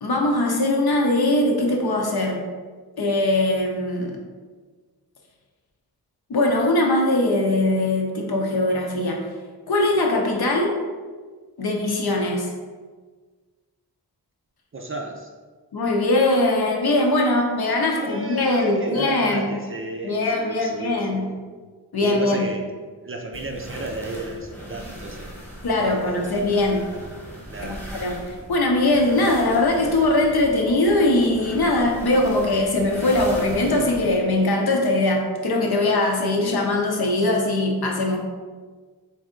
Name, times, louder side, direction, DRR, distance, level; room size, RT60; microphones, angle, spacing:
voice 1, 0.0-2.4 3.0-4.2 6.3-9.3 9.7-10.7 11.6-12.5 15.7-19.5 20.0-21.3 21.9-22.5 25.6-26.8 27.6-28.1 28.5-38.2, left 2 dB, 65° left, 1 dB, 0.8 m, -21 dB
voice 2, 14.7-15.3 17.9-21.4 22.0-22.7 23.0-25.3 25.8-26.5 27.5-27.9, right 2 dB, 30° right, 2 dB, 0.4 m, -33 dB
sound 1, 23.3-34.2, equal, 5° left, 1.2 m, -39 dB
3.2 x 2.7 x 3.7 m, 1.5 s
cardioid pair, 55°, 41 cm